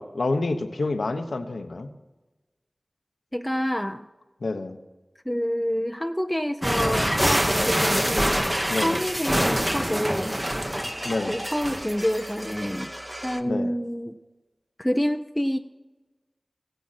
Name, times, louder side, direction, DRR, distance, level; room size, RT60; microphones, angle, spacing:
voice 1, 0.0-1.9 4.4-4.8 8.7-9.0 11.0-11.4 13.5-13.7, left 3 dB, 90° left, 7 dB, 1.0 m, -28 dB
voice 2, 3.3-4.1 5.3-8.5 8.7-10.4 11.3-12.9 13.2-14.2 14.8-15.6, equal, 5° left, 6 dB, 0.5 m, -28 dB
sound 1, 6.6-13.4, equal, 15° right, 0.9 m, -26 dB
16.0 x 9.2 x 4.2 m, 1.2 s
wide cardioid pair, 55°, 0 cm